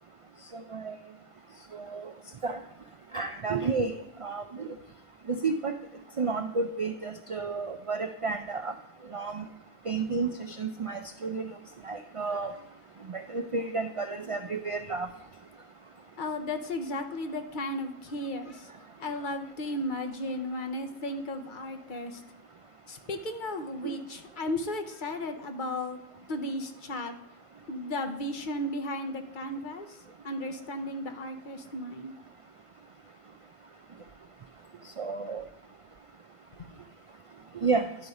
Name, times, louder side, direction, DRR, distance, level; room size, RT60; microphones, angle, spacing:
voice 1, 1.7-2.1 2.4-2.6 3.1-4.7 5.3-5.7 6.2-8.7 9.1-9.4 9.9-11.5 11.8-12.5 13.1-15.1 23.8-23.9 35.0-35.4 37.6-37.9, right 4 dB, 55° right, 7 dB, 0.3 m, -31 dB
voice 2, 16.2-18.7 19.0-22.2 22.9-26.0 26.3-27.1 27.7-29.9 30.2-32.1 36.6-36.7, left 1 dB, 55° left, 6 dB, 0.9 m, -34 dB
11.5 x 4.0 x 4.8 m, 0.94 s
omnidirectional pair, 1.1 m